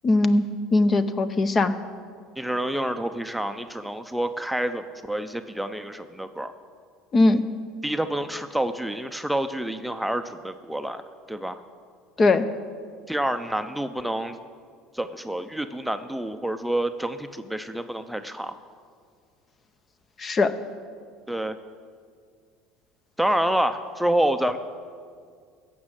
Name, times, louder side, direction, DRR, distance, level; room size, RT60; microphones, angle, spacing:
voice 1, 0.0-0.5 0.7-1.7 7.1-7.4 12.2-12.5 20.2-20.5, left 2 dB, 30° left, 12 dB, 0.7 m, -20 dB
voice 2, 2.4-6.5 7.8-11.0 11.3-11.6 13.1-14.4 14.9-18.6 21.3-21.6 23.2-24.6, right 1 dB, ahead, 8 dB, 0.6 m, -28 dB
15.5 x 6.2 x 7.5 m, 2.1 s
hypercardioid pair, 85°, 0 cm